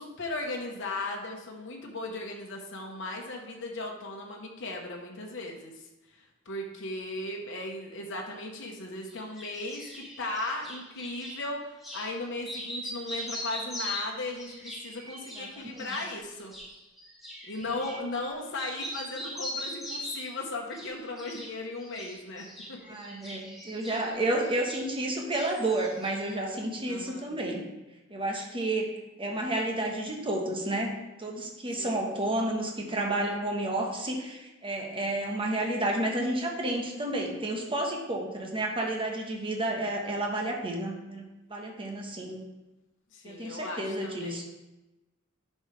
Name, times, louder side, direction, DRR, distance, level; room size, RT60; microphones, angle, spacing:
voice 1, 0.0-16.5 17.5-23.0 26.9-27.3 31.7-32.0 43.1-44.5, left 2 dB, 60° left, 0 dB, 1.0 m, -37 dB
sound 1, 9.1-11.4 11.8-12.1 12.4-18.3 18.5-20.4 20.7-21.5 21.8-25.1 25.3-26.3, equal, ahead, 1.8 m, -40 dB
voice 2, 22.9-27.6 28.1-30.9 31.2-42.4 43.2-44.4, right 1 dB, 25° right, 1 dB, 1.2 m, -31 dB
10.0 x 5.5 x 3.3 m, 1.0 s
head